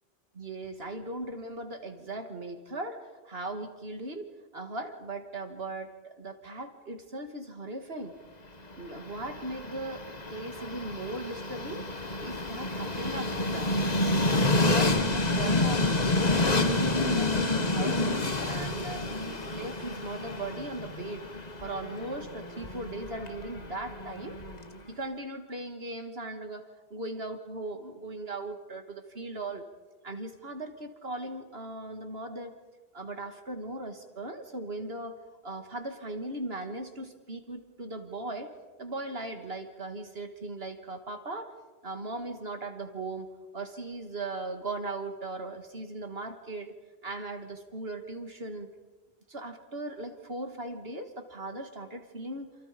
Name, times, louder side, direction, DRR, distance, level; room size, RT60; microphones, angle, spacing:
voice 1, 0.3-8.2 8.8-11.9 12.2-13.7 14.3-16.0 16.4-18.1 18.4-21.3 21.6-24.4 24.9-29.6 30.0-32.6 32.9-38.5 38.8-41.5 41.8-46.7 47.0-48.7 49.3-52.6, right 2 dB, 70° right, 6 dB, 2.7 m, -38 dB
Train, 8.7-24.8, left 2 dB, 40° left, 1.7 m, -29 dB
29.0 x 28.0 x 5.4 m, 1.3 s
omnidirectional pair, 1.1 m